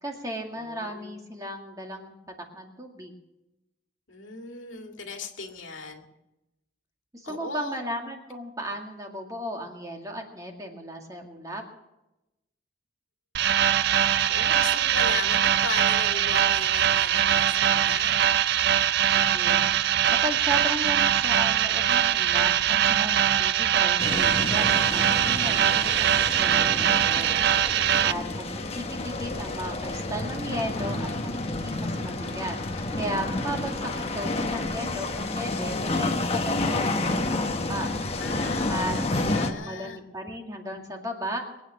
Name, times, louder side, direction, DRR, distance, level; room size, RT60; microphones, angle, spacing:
voice 1, 0.0-2.2 2.5-3.1 7.1-11.6 19.1-19.6 20.2-27.7 28.0-37.9 38.7-39.0 39.5-41.4, equal, 20° right, 2 dB, 2.1 m, -35 dB
voice 2, 0.5-1.2 4.1-6.0 7.2-7.8 14.3-18.2 27.7-28.4 38.2-40.0, left 3 dB, 85° left, 3 dB, 2.2 m, -37 dB
sound 1, 13.3-28.1, right 10 dB, 55° right, 0.5 m, -22 dB
sound 2, 24.0-39.5, left 2 dB, 30° left, 1.1 m, -30 dB
22.5 x 9.0 x 6.3 m, 0.95 s
head